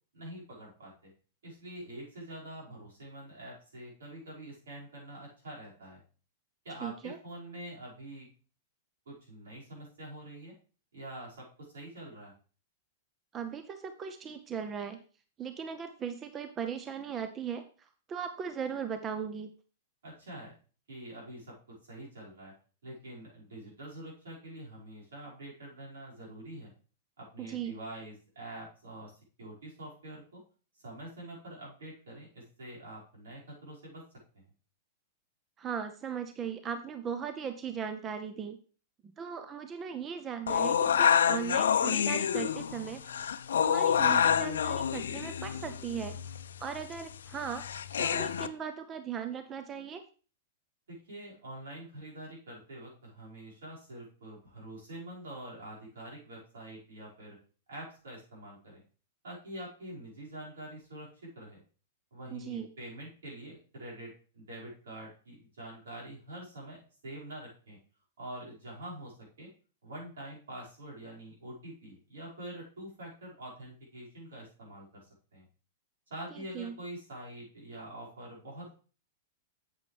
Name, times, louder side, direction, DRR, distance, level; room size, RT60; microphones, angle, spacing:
voice 1, 0.1-1.1 1.4-6.0 6.6-8.3 9.1-10.5 10.9-12.3 20.0-20.5 20.9-22.5 22.8-26.7 27.2-29.1 29.4-30.4 30.7-34.0 34.3-34.4 50.9-57.4 57.7-58.8 59.2-61.6 62.1-67.8 68.2-69.5 69.8-75.0 75.3-75.5 76.1-78.7, right 1 dB, 80° right, -5 dB, 5.4 m, -45 dB
voice 2, 6.8-7.2 13.3-15.0 15.4-19.5 27.4-27.8 35.6-38.6 39.0-43.3 43.6-46.1 46.6-47.6 48.0-50.0 62.3-62.7 76.3-76.8, right 7 dB, 25° right, 9 dB, 0.6 m, -38 dB
sound 1, 40.5-48.5, left 8 dB, 80° left, 0.5 m, -28 dB
8.2 x 7.8 x 3.4 m, 0.38 s
hypercardioid pair, 110°, 0 cm